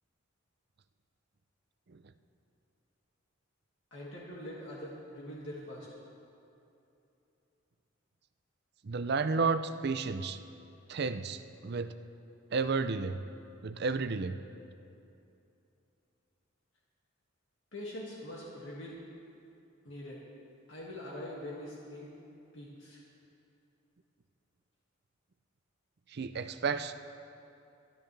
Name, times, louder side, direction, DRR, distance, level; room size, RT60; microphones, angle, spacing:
voice 1, 3.9-5.9 17.7-19.0 19.8-20.2 20.7-22.1 22.5-23.0, left 1 dB, 65° left, -5 dB, 2.1 m, -43 dB
voice 2, 8.8-10.4 10.9-11.9 12.5-13.2 13.6-14.4 26.1-26.9, right 4 dB, 50° right, 11 dB, 0.5 m, -32 dB
23.5 x 12.5 x 3.4 m, 2.8 s
head